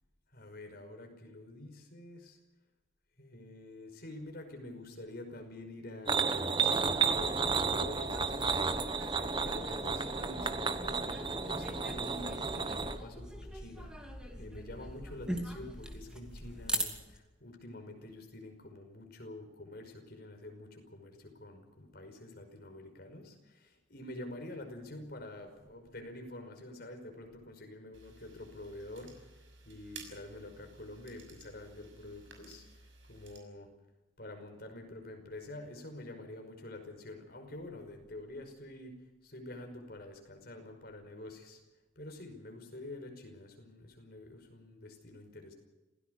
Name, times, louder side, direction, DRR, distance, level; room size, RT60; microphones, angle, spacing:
voice 1, 0.3-2.4 3.2-29.3 29.6-32.7 33.1-33.7 34.2-39.0 39.2-41.6 42.0-45.5, left 1 dB, 45° left, 4 dB, 5.5 m, -47 dB
sound 1, 6.1-13.0, right 5 dB, 25° right, 1.2 m, -32 dB
sound 2, 6.6-17.2, equal, 5° right, 2.5 m, -42 dB
sound 3, 27.9-33.4, right 4 dB, 65° right, 6.1 m, -54 dB
27.5 x 18.0 x 6.7 m, 1.0 s
head